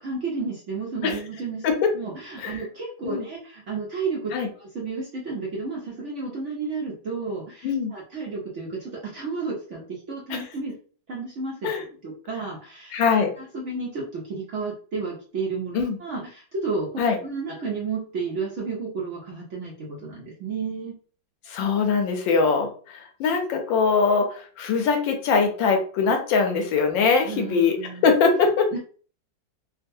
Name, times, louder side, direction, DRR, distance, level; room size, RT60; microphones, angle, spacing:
voice 1, 0.0-1.6 1.9-4.3 4.6-10.7 11.1-13.0 13.4-16.9 17.2-20.9 27.2-28.1 28.7-28.8, right 4 dB, 60° right, -3 dB, 0.8 m, -32 dB
voice 2, 12.9-13.3 15.7-16.0 17.0-17.2 21.5-27.8 28.0-28.7, left 5 dB, 85° left, 4 dB, 1.4 m, -22 dB
3.6 x 2.3 x 2.6 m, 0.42 s
omnidirectional pair, 2.0 m